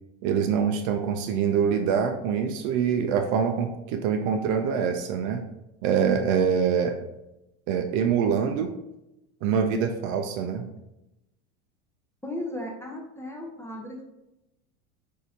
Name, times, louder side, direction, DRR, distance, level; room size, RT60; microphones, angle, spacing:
voice 1, 0.2-5.4 5.8-7.1 7.7-8.7 9.4-10.6, right 7 dB, 45° right, 6 dB, 0.5 m, -25 dB
voice 2, 12.2-14.0, left 1 dB, 5° left, 0 dB, 0.6 m, -35 dB
6.2 x 2.8 x 2.7 m, 0.90 s
supercardioid pair, 115°, 40 cm